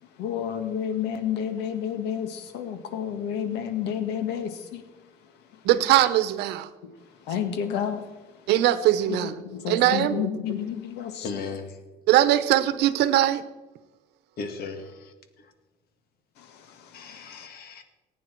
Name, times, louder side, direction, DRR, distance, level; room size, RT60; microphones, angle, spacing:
voice 1, 0.2-4.8 7.3-8.1 9.4-11.2 17.3-17.5, left 8 dB, 85° left, 8 dB, 1.7 m, -30 dB
voice 2, 5.6-6.7 8.5-9.4 9.7-10.3 12.1-13.4, right 13 dB, 85° right, 14 dB, 1.0 m, -21 dB
voice 3, 11.2-11.8 14.4-15.5 16.9-17.8, left 4 dB, 65° left, 7 dB, 2.1 m, -37 dB
19.5 x 9.3 x 4.7 m, 1.2 s
cardioid pair, 110°, 17 cm